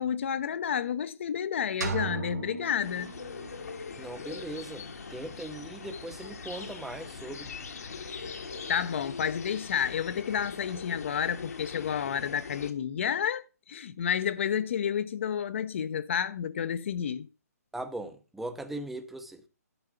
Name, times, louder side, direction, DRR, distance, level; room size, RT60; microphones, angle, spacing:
voice 1, 0.0-3.1 8.7-17.3, left 8 dB, 50° left, 0.7 m, -30 dB
sound 1, 1.8-3.7, right 6 dB, 85° right, 2.2 m, -36 dB
sound 2, 2.8-12.7, left 5 dB, 70° left, 1.6 m, -41 dB
voice 2, 4.0-7.5 17.7-19.4, right 2 dB, ahead, 0.7 m, -39 dB
11.0 x 4.6 x 6.7 m
hypercardioid pair, 155°, 9 cm